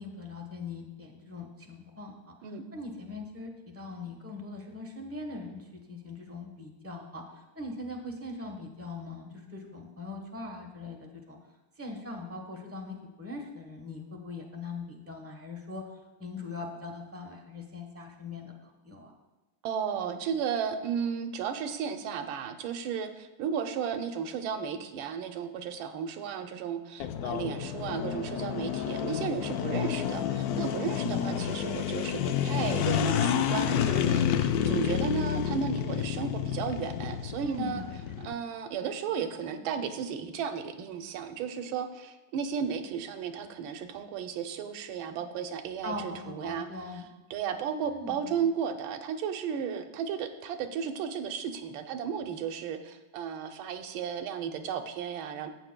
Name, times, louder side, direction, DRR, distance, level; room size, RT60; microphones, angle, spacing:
voice 1, 0.0-2.3 2.7-11.4 11.8-15.8 16.2-19.1 37.4-38.3 45.8-47.1 47.8-48.4, left 2 dB, 15° right, 1 dB, 0.6 m, -41 dB
voice 2, 19.6-37.8 38.2-46.7 47.3-55.5, right 7 dB, 90° right, 7 dB, 1.5 m, -34 dB
sound 1, 27.0-38.3, left 9 dB, 85° left, 0.8 m, -29 dB
14.0 x 8.1 x 2.2 m, 1.1 s
omnidirectional pair, 2.2 m